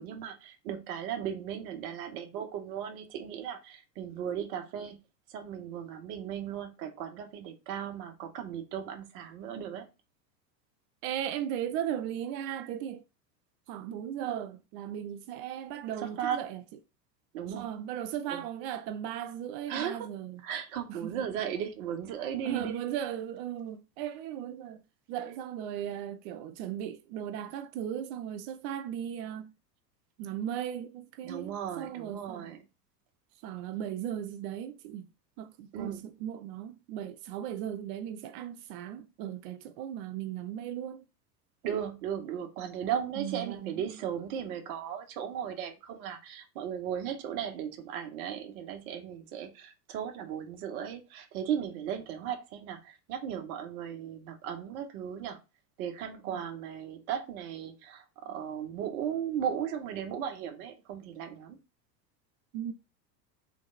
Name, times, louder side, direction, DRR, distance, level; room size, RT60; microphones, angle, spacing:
voice 1, 0.0-5.0 5.3-9.9 16.0-16.4 17.3-17.7 18.3-18.4 19.7-20.1 20.4-22.8 31.2-32.6 35.7-36.1 41.6-55.4 55.8-61.6, right 9 dB, 60° right, 1.2 m, -36 dB
voice 2, 11.0-13.0 13.7-16.6 17.5-20.4 20.9-21.2 22.4-24.8 25.1-29.5 30.2-32.6 33.4-35.1 35.4-41.0 43.2-44.0 56.2-56.4 62.5-62.7, right 10 dB, 45° right, 0.5 m, -37 dB
3.4 x 3.2 x 3.9 m
hypercardioid pair, 95°, 49 cm